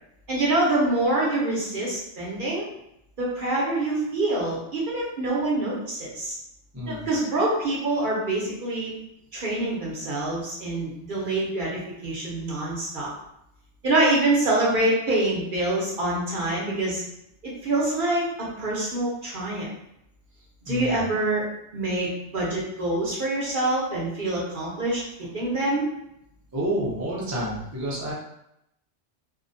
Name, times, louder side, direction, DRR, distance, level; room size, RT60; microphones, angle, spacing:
voice 1, 0.3-2.7 3.2-6.4 6.9-8.9 9.3-13.1 13.8-17.0 17.6-19.7 20.7-21.5 21.7-25.0 25.3-25.8, right 2 dB, 50° right, -5 dB, 0.8 m, -25 dB
voice 2, 6.7-7.1 20.7-21.0 26.5-28.1, equal, 20° right, -6 dB, 0.4 m, -29 dB
2.7 x 2.1 x 2.6 m, 0.81 s
omnidirectional pair, 1.3 m